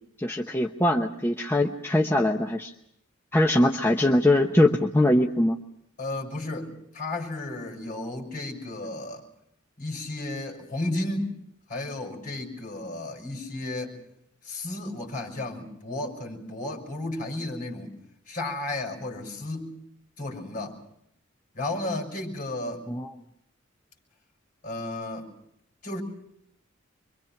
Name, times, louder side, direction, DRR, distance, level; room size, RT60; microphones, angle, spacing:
voice 1, 0.2-2.7 3.3-5.6 22.9-23.1, left 1 dB, 10° left, 2 dB, 0.9 m, -22 dB
voice 2, 6.0-9.3 9.8-11.3 11.7-14.0 14.4-17.9 18.3-19.7 20.2-20.7 21.5-22.8 24.6-25.3 25.8-26.0, left 2 dB, 40° left, 2 dB, 6.1 m, -33 dB
26.5 x 24.0 x 5.9 m, 0.77 s
head